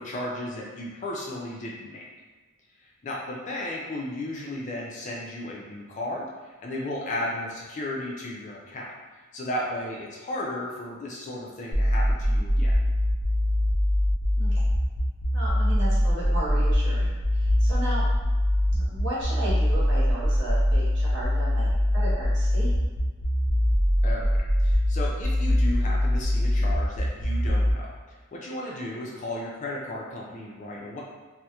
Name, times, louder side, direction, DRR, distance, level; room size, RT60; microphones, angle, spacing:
voice 1, 0.0-2.0 3.0-8.9 9.3-12.7 24.0-24.3 24.6-31.0, left 1 dB, 35° left, -3 dB, 0.3 m, -34 dB
sound 1, 11.7-27.7, left 1 dB, 35° right, 0.4 m, -23 dB
voice 2, 15.3-18.1 18.7-22.8, right 1 dB, 55° right, -8 dB, 0.9 m, -35 dB
2.3 x 2.0 x 2.8 m, 1.4 s
head